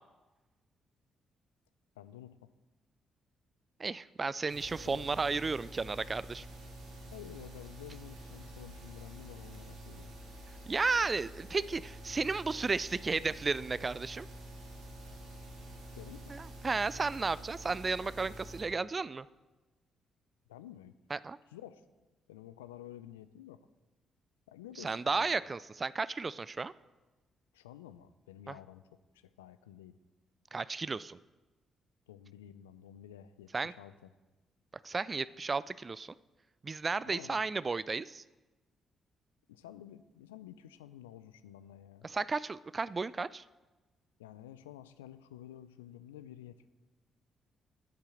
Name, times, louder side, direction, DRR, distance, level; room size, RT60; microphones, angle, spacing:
voice 1, 2.0-2.5 4.8-5.0 7.1-10.1 15.7-16.4 20.5-21.0 21.5-21.8 22.3-23.6 24.5-25.4 27.5-30.0 32.1-33.9 37.0-37.4 39.5-42.1 44.2-46.7, left 11 dB, 80° left, 14 dB, 0.4 m, -51 dB
voice 2, 3.8-6.5 10.7-14.3 16.3-19.3 21.1-21.4 24.8-26.7 28.5-28.6 30.5-31.2 33.5-33.7 34.8-36.1 36.6-38.2 42.0-43.4, right 4 dB, 35° right, 18 dB, 0.3 m, -33 dB
sound 1, 4.5-18.6, right 1 dB, 75° right, 3.5 m, -48 dB
10.5 x 7.4 x 6.4 m, 1.1 s
figure-of-eight pair, 40°, 0 cm